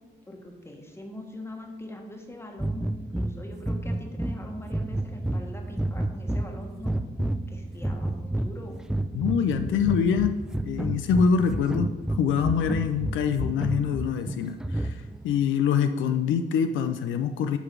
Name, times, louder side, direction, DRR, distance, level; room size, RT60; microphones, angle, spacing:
voice 1, 0.3-7.0 7.5-8.8, left 1 dB, 10° left, 2 dB, 1.5 m, -43 dB
sound 1, 2.6-15.3, right 1 dB, 5° right, 0.3 m, -31 dB
voice 2, 9.1-17.6, left 7 dB, 75° left, 7 dB, 0.5 m, -25 dB
8.2 x 3.9 x 5.9 m, 1.2 s
cardioid pair, 90°, 20 cm